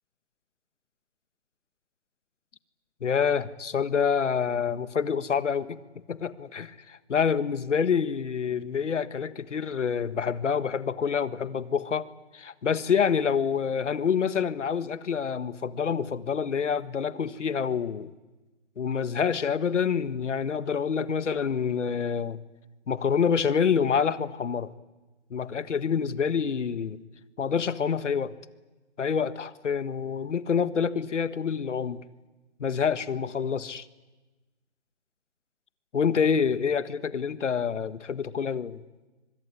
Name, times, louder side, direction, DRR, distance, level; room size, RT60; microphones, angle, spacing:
voice 1, 3.0-5.8 6.1-12.1 12.3-18.1 18.8-22.4 22.9-24.7 25.3-27.0 27.4-28.3 29.0-32.0 32.6-33.8 35.9-38.8, left 6 dB, 90° left, 14 dB, 1.7 m, -27 dB
24.5 x 24.5 x 9.8 m, 1.2 s
hypercardioid pair, 170°, 35 cm